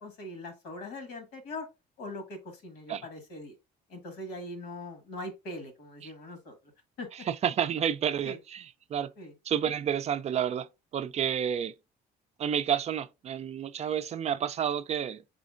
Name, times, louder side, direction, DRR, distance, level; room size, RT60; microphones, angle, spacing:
voice 1, 0.0-1.7 2.0-3.5 3.9-6.7 7.0-7.1 8.2-8.4 9.2-9.3, left 1 dB, 85° left, 1.6 m, -41 dB
voice 2, 7.3-9.1 9.4-10.7 10.9-11.7 12.4-15.2, right 9 dB, 40° right, 0.4 m, -30 dB
5.0 x 4.2 x 2.5 m
cardioid pair, 110°, 17 cm